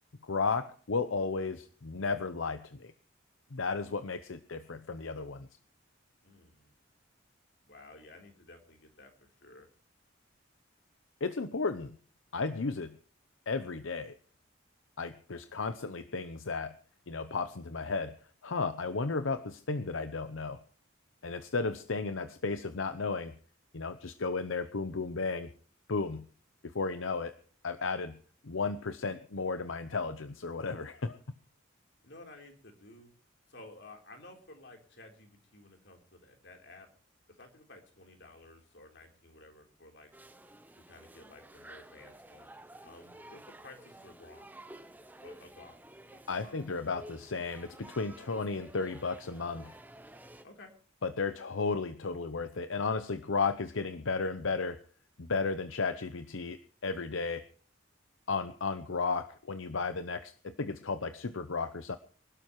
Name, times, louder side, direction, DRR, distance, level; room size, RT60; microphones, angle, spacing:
voice 1, 0.2-2.9 3.5-5.5 11.2-12.0 12.3-13.0 13.5-14.1 15.0-16.7 17.1-18.1 18.4-20.6 21.2-23.4 23.7-25.5 25.9-26.3 26.6-27.3 27.6-28.2 28.4-31.2 46.3-49.7 51.0-54.8 55.2-57.4 58.3-62.0, left 4 dB, 85° left, 11 dB, 0.8 m, -34 dB
voice 2, 6.2-6.7 7.7-9.7 32.0-33.1 33.5-36.9 37.4-40.1 40.7-42.5 42.8-44.5 45.2-45.8 46.1-47.0 50.4-50.7, left 2 dB, 60° left, 3 dB, 3.8 m, -54 dB
sound 1, 40.1-50.4, right 1 dB, 10° right, 0.8 m, -52 dB
24.5 x 12.0 x 3.1 m, 0.42 s
head